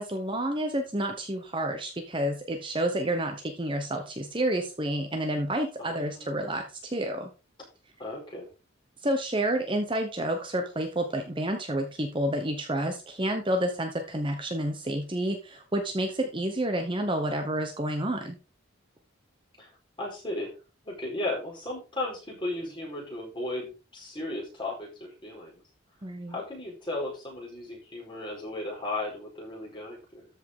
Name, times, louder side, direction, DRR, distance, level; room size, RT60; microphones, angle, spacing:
voice 1, 0.0-7.3 9.0-18.4 26.0-26.4, right 1 dB, 25° right, 4 dB, 1.0 m, -29 dB
voice 2, 5.8-6.5 8.0-8.5 19.6-19.7 20.0-20.5 20.8-25.6 26.3-30.3, left 2 dB, 25° left, -2 dB, 4.5 m, -35 dB
13.5 x 5.6 x 3.8 m, 0.32 s
head